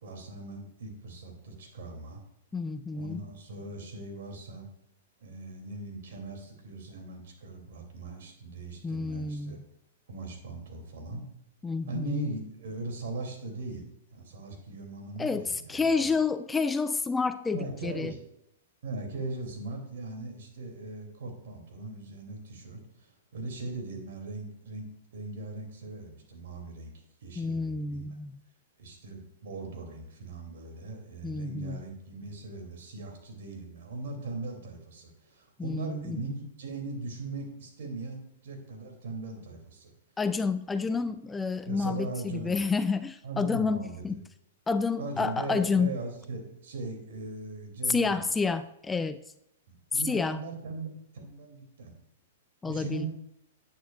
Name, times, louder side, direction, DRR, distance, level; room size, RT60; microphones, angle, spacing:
voice 1, 0.0-2.2 2.9-4.7 5.2-9.6 10.1-11.3 11.9-16.1 17.5-18.2 18.8-26.9 27.2-28.1 28.8-39.9 41.6-42.6 43.2-44.2 45.0-48.3 49.7-51.9 52.7-53.1, right 2 dB, 70° right, 2 dB, 2.9 m, -39 dB
voice 2, 2.5-3.2 8.8-9.6 11.6-12.3 15.2-18.1 27.4-28.3 31.2-31.8 35.6-36.2 40.2-44.2 44.7-46.0 47.9-49.2 49.9-50.4 52.6-53.1, left 4 dB, 10° left, 11 dB, 0.4 m, -29 dB
11.0 x 8.9 x 2.5 m, 0.78 s
hypercardioid pair, 120°, 0 cm